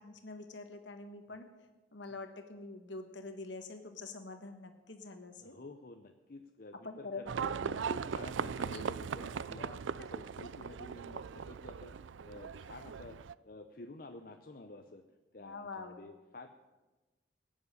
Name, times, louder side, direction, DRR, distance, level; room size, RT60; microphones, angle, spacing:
voice 1, 0.0-1.5 1.9-5.6 6.8-7.8 8.4-8.5 8.7-8.8 10.0-10.1 15.4-16.0, left 3 dB, 70° left, 6 dB, 1.4 m, -45 dB
voice 2, 5.4-7.5 7.9-13.2 13.4-15.0 15.3-16.5, left 2 dB, 50° left, 6 dB, 0.7 m, -50 dB
Livestock farm animals working animals, 7.3-13.3, right 6 dB, 80° right, 0.4 m, -39 dB
18.0 x 7.3 x 9.8 m, 1.2 s
head